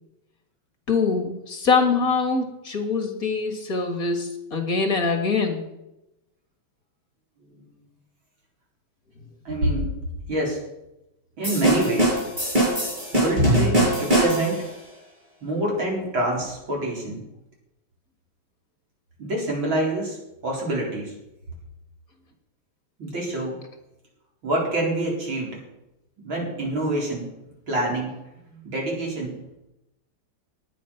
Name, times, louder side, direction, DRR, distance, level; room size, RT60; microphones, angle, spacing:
voice 1, 0.9-5.7, left 4 dB, 45° left, 4 dB, 2.3 m, -23 dB
voice 2, 9.5-9.9 10.3-10.6 11.4-12.2 13.1-14.7 15.4-17.2 19.2-20.2 20.4-21.2 23.0-23.6 24.4-25.6 26.2-27.3 27.7-28.1 28.5-29.4, right 1 dB, 75° right, -2 dB, 5.2 m, -26 dB
sound 1, 11.4-14.7, right 1 dB, 20° right, 7.5 m, -21 dB
19.5 x 9.7 x 5.9 m, 0.91 s
omnidirectional pair, 2.2 m